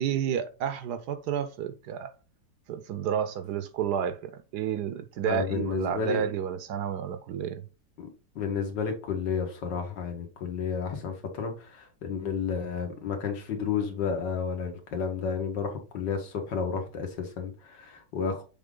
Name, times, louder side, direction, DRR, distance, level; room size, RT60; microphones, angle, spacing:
voice 1, 0.0-2.1 2.7-7.6, right 9 dB, 70° right, 1.1 m, -31 dB
voice 2, 5.3-6.2 8.0-8.1 8.4-18.4, left 6 dB, 75° left, 1.9 m, -31 dB
7.0 x 3.7 x 3.8 m
omnidirectional pair, 2.0 m